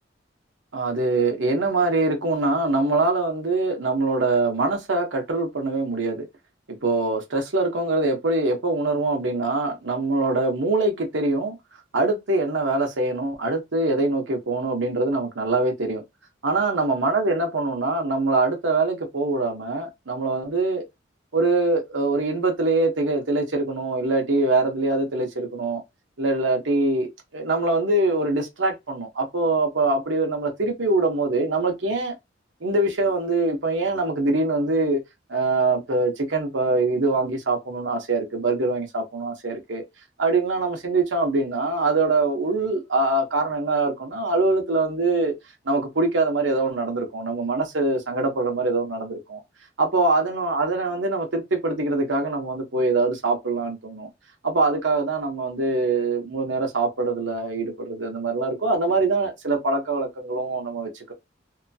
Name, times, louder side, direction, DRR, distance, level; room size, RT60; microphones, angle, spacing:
voice 1, 0.7-6.3 6.7-11.6 11.9-16.0 16.4-20.8 21.3-25.8 26.2-32.1 32.6-35.0 35.3-39.8 40.2-45.3 45.7-49.4 49.8-54.1 54.4-61.1, right 3 dB, 70° right, 0.9 m, -23 dB
2.8 x 2.2 x 2.7 m
head